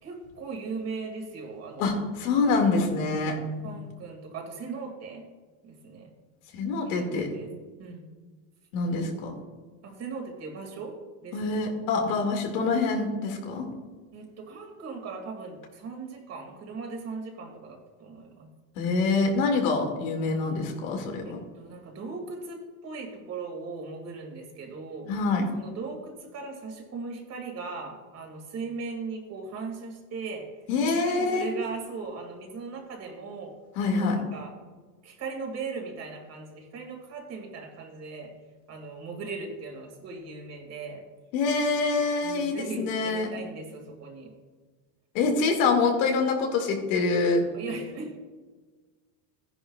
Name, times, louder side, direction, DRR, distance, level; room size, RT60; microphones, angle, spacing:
voice 1, 0.0-2.0 3.1-3.4 3.6-5.3 5.6-6.1 6.8-7.5 7.8-8.1 9.8-11.6 14.1-18.5 21.2-25.1 25.5-30.5 30.8-33.5 33.9-34.5 35.0-38.3 38.7-41.0 42.2-44.3 47.5-48.2, right 4 dB, 35° right, 2 dB, 2.3 m, -38 dB
voice 2, 1.8-3.4 6.5-7.3 8.7-9.3 11.3-13.7 18.8-21.4 25.1-25.5 30.7-31.5 33.8-34.2 41.3-43.3 45.1-47.4, left 4 dB, 80° left, 3 dB, 2.2 m, -25 dB
14.5 x 10.5 x 2.4 m, 1.4 s
cardioid pair, 150°, 43 cm